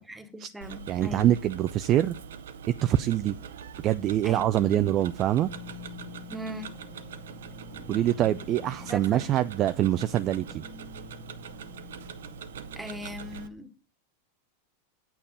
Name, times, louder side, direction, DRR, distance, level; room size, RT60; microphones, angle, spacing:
voice 1, 0.0-1.3 4.2-4.7 6.3-6.7 8.9-9.2 12.8-13.7, equal, 10° right, 1.5 m, -39 dB
Tick-tock, 0.6-13.5, right 7 dB, 60° right, 0.8 m, -43 dB
voice 2, 0.9-2.2 2.8-3.4 3.8-5.5 7.9-10.6, right 12 dB, 35° right, 0.4 m, -24 dB
sound 1, 5.4-13.4, left 8 dB, 10° left, 1.6 m, -47 dB
8.7 x 8.5 x 5.2 m
figure-of-eight pair, 90°, 0 cm